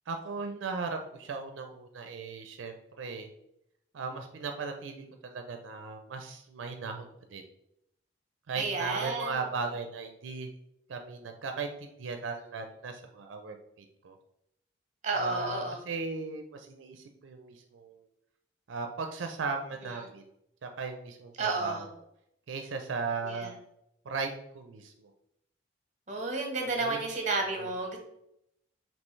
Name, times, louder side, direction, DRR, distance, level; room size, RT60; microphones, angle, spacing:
voice 1, 0.1-3.3 3.9-7.4 8.5-10.5 10.9-13.6 14.0-14.1 15.1-18.0 18.7-20.2 20.6-21.9 22.5-23.5 24.1-25.1 26.7-27.0 27.6-27.7, right 4 dB, 85° right, 5 dB, 0.4 m, -37 dB
voice 2, 8.6-9.3 15.0-15.8 21.4-21.8 23.2-23.5 26.1-28.0, right 3 dB, 40° right, 3 dB, 0.9 m, -31 dB
5.3 x 3.0 x 3.1 m, 0.80 s
head